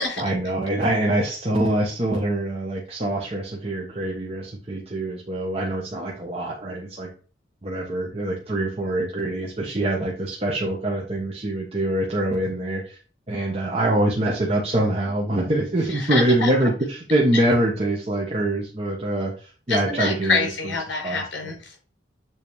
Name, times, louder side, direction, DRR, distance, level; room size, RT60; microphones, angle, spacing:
voice 1, 0.2-7.1 7.6-13.0 13.3-20.5 21.0-21.2, right 1 dB, 35° right, -2 dB, 1.1 m, -24 dB
voice 2, 15.9-16.5 17.3-17.4 19.7-21.7, left 4 dB, 70° left, 0 dB, 4.2 m, -26 dB
7.2 x 4.1 x 4.7 m, 0.39 s
head